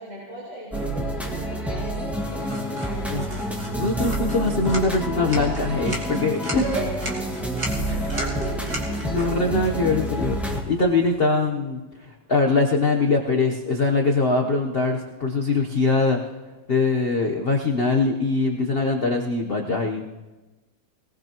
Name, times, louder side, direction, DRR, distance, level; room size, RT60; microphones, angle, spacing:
voice 1, 0.0-3.4 6.4-7.0 7.9-9.1 9.5-9.7 11.3-11.4, right 2 dB, 70° right, -8 dB, 5.0 m, -37 dB
sound 1, 0.7-10.6, right 1 dB, ahead, 1.5 m, -28 dB
sound 2, 2.4-11.5, right 1 dB, 35° right, 2.5 m, -38 dB
voice 2, 3.8-6.6 7.9-8.1 9.0-11.8 12.3-16.2 16.7-20.1, left 3 dB, 45° left, 1 dB, 0.8 m, -22 dB
20.5 x 18.5 x 3.0 m, 1.2 s
omnidirectional pair, 2.1 m